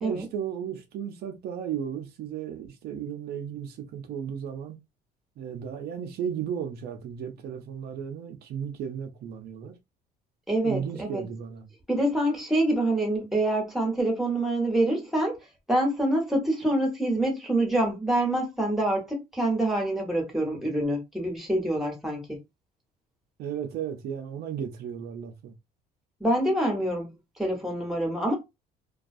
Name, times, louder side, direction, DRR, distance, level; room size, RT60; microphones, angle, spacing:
voice 1, 0.0-4.8 5.4-9.7 10.6-11.7 23.4-25.5, right 8 dB, 70° right, 0.5 m, -35 dB
voice 2, 10.5-11.2 11.9-15.4 15.7-22.4 26.2-27.1 27.4-28.3, right 1 dB, ahead, 1.0 m, -26 dB
2.3 x 2.3 x 2.5 m
cardioid pair, 110°, 17 cm